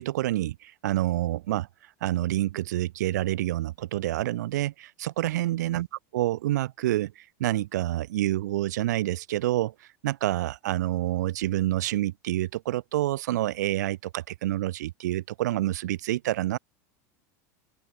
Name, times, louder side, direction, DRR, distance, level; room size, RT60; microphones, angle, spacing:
voice 1, 0.0-1.7 2.0-5.9 6.1-16.6, right 15 dB, 90° right, 2.0 m, -28 dB
open air
supercardioid pair, 155°, 9 cm